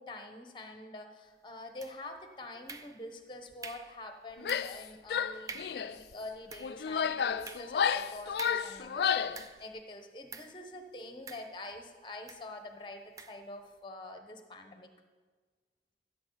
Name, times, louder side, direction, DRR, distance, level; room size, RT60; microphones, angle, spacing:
voice 1, 0.0-14.9, left 2 dB, 25° left, 6 dB, 1.0 m, -46 dB
sound 1, 1.8-2.2 2.7-3.2 3.6-4.0 4.5-4.8 5.1-5.2 5.5-5.9 6.3-9.8 10.3-10.6 11.3-11.9 12.3-12.5 13.2-13.5, right 4 dB, 20° right, 0.4 m, -48 dB
Female speech woman speaking / Yell, 4.4-4.8 5.1-6.0 6.6-9.4, left 7 dB, 65° left, 0.3 m, -31 dB
16.0 x 7.2 x 3.9 m, 1.4 s
head